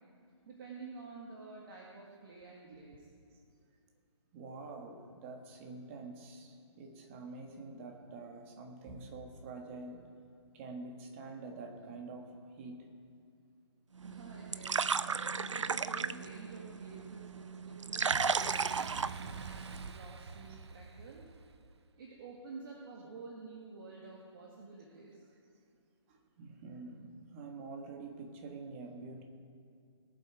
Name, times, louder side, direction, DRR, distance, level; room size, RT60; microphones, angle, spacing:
voice 1, 0.5-3.1 14.0-18.8 19.2-21.3 22.0-25.3, right 4 dB, 45° right, -3 dB, 2.0 m, -50 dB
voice 2, 4.3-10.1 10.5-12.9 26.1-29.2, right 3 dB, 25° right, 3 dB, 1.4 m, -47 dB
sound 1, 14.0-19.9, right 5 dB, 85° right, 0.5 m, -35 dB
Boom, 18.1-21.7, right 4 dB, 65° right, 0.7 m, -46 dB
18.5 x 7.7 x 4.8 m, 2.4 s
figure-of-eight pair, 150°, 15 cm